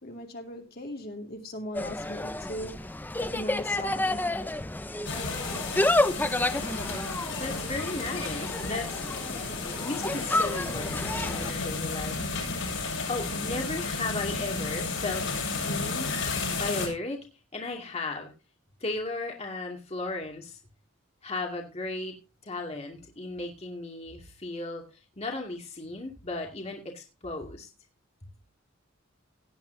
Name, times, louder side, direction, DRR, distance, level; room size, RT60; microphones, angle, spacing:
voice 1, 0.0-4.2, left 1 dB, 50° left, 2.6 m, -39 dB
Insect, 1.7-11.5, left 1 dB, 10° left, 0.6 m, -30 dB
sound 1, 5.0-16.9, left 3 dB, 70° left, 6.6 m, -33 dB
voice 2, 7.3-9.4 9.8-16.2 16.6-18.3 18.8-20.6 21.2-22.2 22.4-27.7, left 2 dB, 30° left, 2.4 m, -36 dB
17.5 x 9.2 x 2.7 m
head